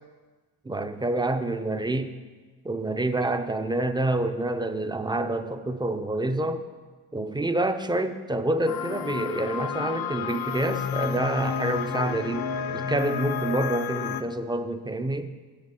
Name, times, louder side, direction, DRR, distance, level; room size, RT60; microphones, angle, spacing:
voice 1, 0.6-2.1 2.6-6.6 7.1-15.3, right 2 dB, 10° right, 9 dB, 0.4 m, -27 dB
sound 1, 8.7-14.2, left 7 dB, 60° left, 0.6 m, -30 dB
8.8 x 6.6 x 7.0 m, 1.4 s
wide cardioid pair, 140°, 39 cm